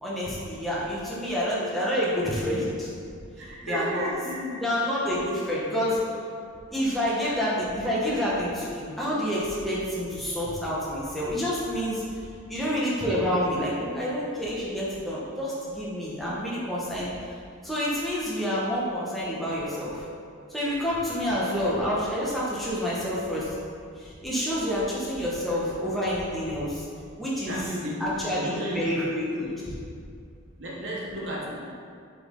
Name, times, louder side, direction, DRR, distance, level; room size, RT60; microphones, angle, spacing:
voice 1, 0.0-2.9 3.6-4.0 4.6-6.0 6.7-12.0 12.5-17.1 17.6-20.0 20.5-23.5 24.0-26.8 27.2-27.6 28.0-29.5, equal, ahead, -8 dB, 1.5 m, -28 dB
voice 2, 3.4-4.7 5.2-5.3 27.5-28.9 30.6-31.6, equal, 60° right, -4 dB, 1.2 m, -33 dB
7.8 x 5.4 x 3.9 m, 2.3 s
head